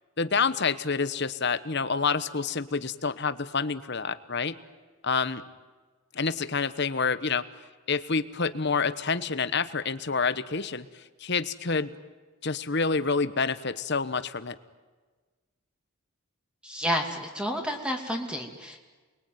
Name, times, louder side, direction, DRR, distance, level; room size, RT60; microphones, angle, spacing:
voice 1, 0.2-4.6 5.0-5.4 6.1-7.4 7.9-10.8 11.2-11.9 12.4-14.6, left 4 dB, 50° left, 13 dB, 1.1 m, -28 dB
voice 2, 16.6-18.8, equal, 5° right, 3 dB, 2.6 m, -30 dB
28.5 x 22.0 x 9.4 m, 1.4 s
head